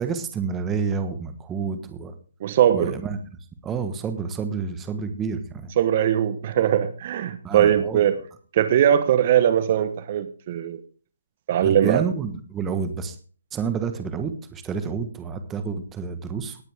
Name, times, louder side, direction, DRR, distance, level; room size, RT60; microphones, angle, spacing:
voice 1, 0.0-2.1 2.7-3.2 3.6-5.7 7.4-8.0 11.6-13.1 13.5-16.6, right 6 dB, 15° right, 9 dB, 1.3 m, -29 dB
voice 2, 2.4-2.9 5.8-8.2 8.5-10.8 11.5-12.0, right 10 dB, 40° right, 12 dB, 1.1 m, -20 dB
18.0 x 8.9 x 3.6 m, 0.40 s
hypercardioid pair, 150°, 0 cm